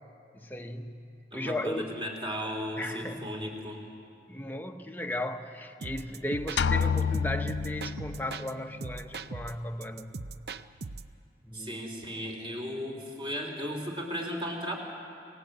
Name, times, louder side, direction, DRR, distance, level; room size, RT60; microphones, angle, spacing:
voice 1, 0.3-1.0 1.3-2.0 2.8-3.3 4.3-10.2 11.4-11.8, left 1 dB, 10° left, 5 dB, 0.9 m, -36 dB
voice 2, 1.3-3.8 11.5-14.8, equal, 30° right, 1 dB, 3.5 m, -35 dB
sound 1, 5.8-8.5 8.8-11.1, right 4 dB, 65° right, 0.6 m, -40 dB
sound 2, 6.6-8.4, left 6 dB, 80° left, 0.5 m, -28 dB
26.0 x 19.5 x 8.1 m, 2.6 s
head